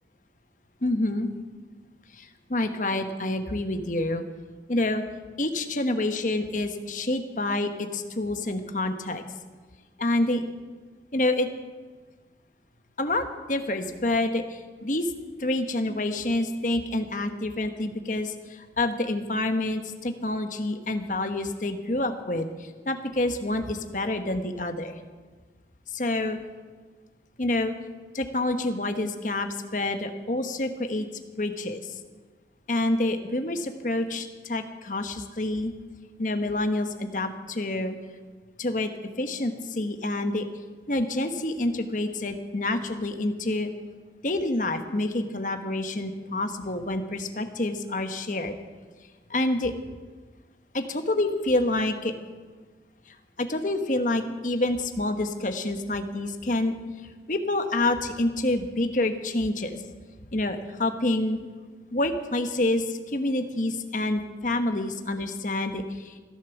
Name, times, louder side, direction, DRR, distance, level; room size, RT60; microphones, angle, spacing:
voice 1, 0.8-1.3 2.1-4.2 4.7-5.0 5.4-9.2 10.0-10.4 11.1-11.5 13.0-15.1 15.4-25.0 25.9-26.4 27.4-27.7 28.1-31.1 31.4-32.0 32.7-35.7 36.2-37.9 38.6-38.9 39.2-40.5 40.9-43.7 44.2-48.6 49.3-49.7 50.7-52.1 53.4-56.7 57.3-59.8 60.3-61.4 61.9-66.2, left 2 dB, 45° left, 7 dB, 1.2 m, -27 dB
15.5 x 11.0 x 7.1 m, 1.4 s
head